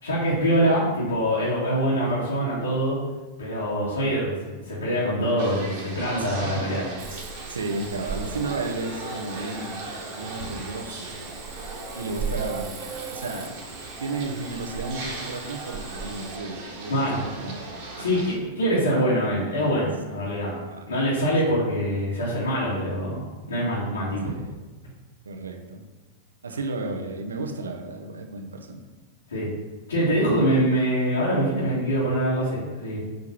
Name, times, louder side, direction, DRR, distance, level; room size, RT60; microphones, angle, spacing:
voice 1, 0.0-3.0 3.4-4.3 4.6-6.8 16.9-17.3 18.0-20.6 20.9-23.2 23.5-24.3 29.3-29.5 29.9-33.0, equal, 70° left, -8 dB, 2.1 m, -24 dB
sound 1, 5.4-18.4, right 2 dB, 50° right, 1.6 m, -38 dB
voice 2, 6.2-6.7 7.0-7.1 7.5-11.4 11.9-12.8 13.1-13.6 14.0-18.2 18.5-18.6 20.1-20.9 24.2-24.6 25.2-25.8 26.4-28.8, right 3 dB, 70° right, 3 dB, 1.0 m, -33 dB
Cricket / Frog, 7.0-16.4, right 5 dB, 25° right, 0.9 m, -38 dB
5.3 x 5.2 x 6.0 m, 1.2 s
figure-of-eight pair, 90°, 0 cm